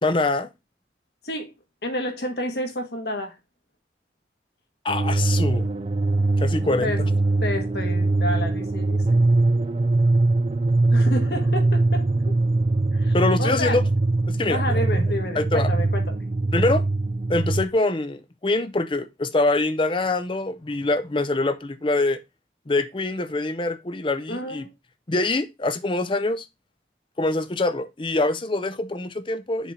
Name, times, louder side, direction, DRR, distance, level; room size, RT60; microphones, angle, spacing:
voice 1, 0.0-0.5 4.8-5.7 6.4-7.1 13.1-13.8 14.3-14.8 15.3-15.7 16.5-16.8 17.3-22.2 22.7-24.7 25.1-26.5 27.2-29.7, left 2 dB, 30° left, 0.6 m, -24 dB
voice 2, 1.8-3.3 6.8-7.0 7.4-9.2 10.9-12.3 12.9-13.8 14.5-16.5 24.3-24.7, left 1 dB, 65° left, 1.7 m, -30 dB
sound 1, 4.9-17.6, right 2 dB, 35° right, 0.4 m, -22 dB
7.2 x 3.8 x 4.1 m
head